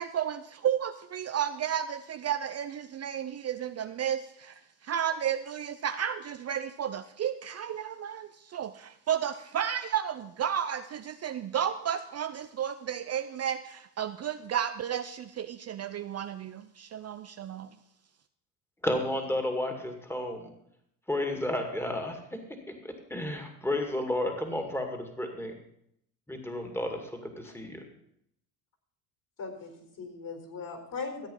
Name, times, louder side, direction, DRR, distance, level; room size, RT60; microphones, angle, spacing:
voice 1, 0.0-4.5 4.8-17.7, right 9 dB, 35° right, 9 dB, 0.6 m, -32 dB
voice 2, 18.8-20.5 21.1-22.4 22.7-25.5 26.3-27.8, left 1 dB, 5° left, 4 dB, 2.3 m, -32 dB
voice 3, 29.4-31.3, left 4 dB, 45° left, 4 dB, 4.2 m, -39 dB
14.5 x 8.4 x 5.6 m, 0.75 s
hypercardioid pair, 75°, 47 cm